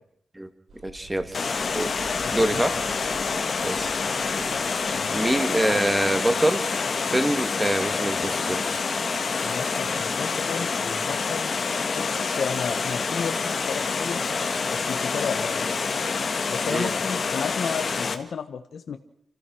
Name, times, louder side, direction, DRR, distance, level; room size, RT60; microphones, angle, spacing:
sound 1, 0.7-7.3, right 2 dB, 70° right, 4.6 m, -49 dB
voice 1, 0.8-1.4 1.7-2.0 2.3-2.8 3.6-6.6 7.1-8.6 16.7-16.9, right 1 dB, 10° right, 9 dB, 1.8 m, -26 dB
Water, 1.3-18.2, left 5 dB, 45° left, 1.6 m, -27 dB
voice 2, 2.2-2.6 3.3-3.6 4.9-5.2 9.4-11.5 11.9-14.2 14.7-15.7 16.5-19.0, left 6 dB, 65° left, 8 dB, 1.4 m, -33 dB
sound 2, 3.6-3.8 4.4-4.8 5.4-5.8 6.4-6.8 7.4-7.8 8.4-8.8 9.4-9.8, right 2 dB, 45° right, 2.5 m, -43 dB
29.0 x 15.0 x 6.2 m, 0.66 s
wide cardioid pair, 160°, 0 cm